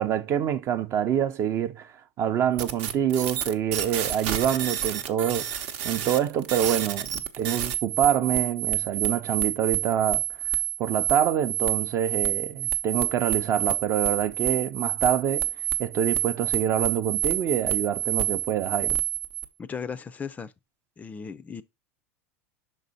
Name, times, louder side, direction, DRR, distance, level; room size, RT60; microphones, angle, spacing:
voice 1, 0.0-1.9 2.2-10.2 10.8-15.5 15.8-19.0, right 9 dB, 40° right, 0.6 m, -26 dB
sound 1, 2.6-19.4, right 12 dB, 70° right, 0.8 m, -28 dB
voice 2, 19.6-20.5 21.0-21.6, left 6 dB, 20° left, 0.4 m, -36 dB
6.2 x 4.0 x 4.0 m
supercardioid pair, 115°, 7 cm